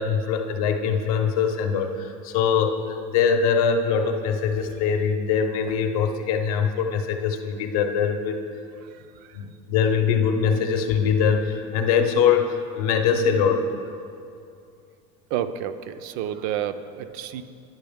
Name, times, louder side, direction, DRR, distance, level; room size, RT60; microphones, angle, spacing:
voice 1, 0.0-8.4 9.3-13.7, left 6 dB, 85° left, 5 dB, 0.7 m, -22 dB
voice 2, 8.8-9.4 15.3-17.4, right 10 dB, 55° right, 10 dB, 0.4 m, -30 dB
10.5 x 5.3 x 3.5 m, 2.5 s
supercardioid pair, 145°, 18 cm